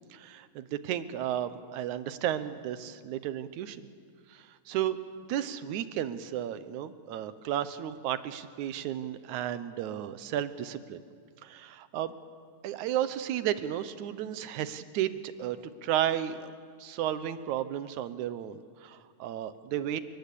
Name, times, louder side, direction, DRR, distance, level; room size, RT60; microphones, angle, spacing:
voice 1, 0.1-3.9 4.3-5.0 5.3-11.0 11.4-12.1 12.6-16.5 16.8-20.0, right 11 dB, 70° right, 13 dB, 2.2 m, -33 dB
29.5 x 20.0 x 8.5 m, 2.1 s
omnidirectional pair, 3.9 m